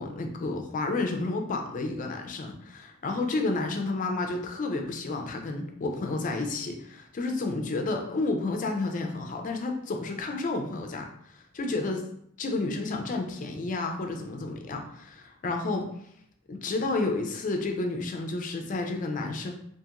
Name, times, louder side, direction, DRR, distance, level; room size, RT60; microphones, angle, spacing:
voice 1, 0.0-12.0 12.4-15.9 16.5-19.5, left 3 dB, 35° left, 3 dB, 0.3 m, -31 dB
2.5 x 2.4 x 2.8 m, 0.72 s
head